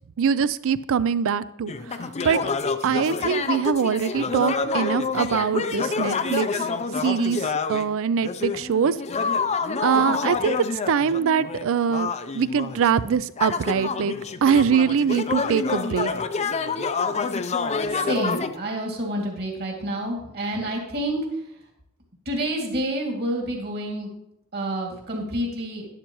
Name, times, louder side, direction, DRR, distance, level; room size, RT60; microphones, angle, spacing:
voice 1, 0.2-2.0 2.2-2.4 2.8-6.6 7.0-9.0 9.8-14.1 14.4-16.1, right 7 dB, 65° right, 17 dB, 0.4 m, -23 dB
sound 1, 1.7-7.9 8.2-18.5, left 4 dB, 30° left, 0.5 m, -27 dB
voice 2, 18.0-21.2 22.3-24.1 24.5-25.9, right 1 dB, 50° right, 0 dB, 2.3 m, -28 dB
11.5 x 10.5 x 3.0 m, 0.78 s
head